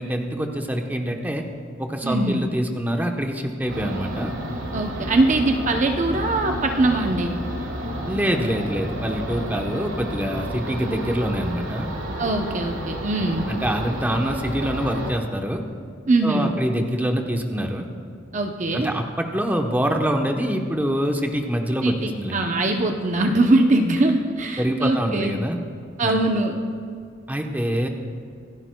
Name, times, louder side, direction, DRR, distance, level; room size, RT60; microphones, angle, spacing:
voice 1, 0.0-1.4 1.8-4.3 8.1-11.9 13.2-15.6 16.2-17.9 18.7-22.5 24.6-25.6 26.0-26.2 27.3-27.9, equal, 10° right, 3 dB, 0.9 m, -25 dB
voice 2, 2.0-2.4 4.7-7.4 12.2-13.5 16.1-16.5 18.3-18.9 21.8-25.4 26.0-26.6, right 2 dB, 40° right, 4 dB, 0.7 m, -22 dB
sound 1, 3.7-15.1, right 1 dB, 85° right, 1.6 m, -31 dB
26.5 x 11.0 x 2.2 m, 2.3 s
head